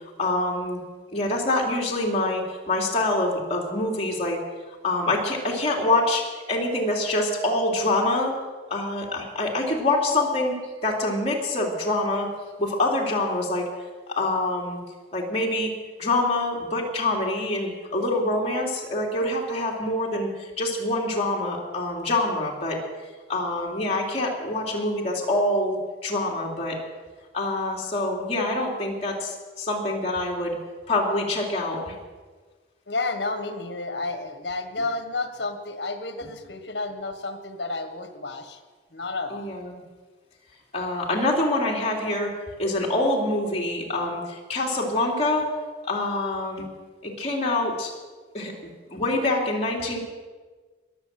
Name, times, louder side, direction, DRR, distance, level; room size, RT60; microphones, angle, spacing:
voice 1, 0.2-0.8 1.1-4.4 4.8-8.4 8.7-10.6 10.8-12.3 12.6-13.6 14.1-14.8 15.1-15.7 16.0-22.8 23.3-26.8 27.3-30.6 30.9-31.9 39.3-39.8 40.7-45.5 45.9-46.7 47.0-47.9 48.3-50.0, left 2 dB, 35° left, -2 dB, 3.2 m, -25 dB
voice 2, 32.9-38.6 38.9-39.5, left 3 dB, 65° left, 7 dB, 1.7 m, -31 dB
21.0 x 7.3 x 7.8 m, 1.4 s
head